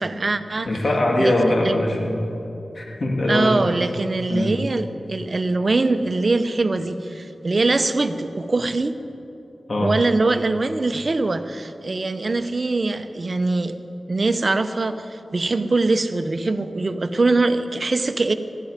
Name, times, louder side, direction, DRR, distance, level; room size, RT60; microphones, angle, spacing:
voice 1, 0.0-0.7 1.2-1.8 3.3-9.0 9.8-13.8 14.1-18.3, right 3 dB, 55° right, 10 dB, 0.8 m, -22 dB
voice 2, 0.7-2.2 2.7-3.6 4.3-4.5 9.7-9.9, left 1 dB, 60° left, -1 dB, 2.7 m, -21 dB
18.0 x 14.0 x 5.1 m, 2.8 s
cardioid pair, 45°, 0 cm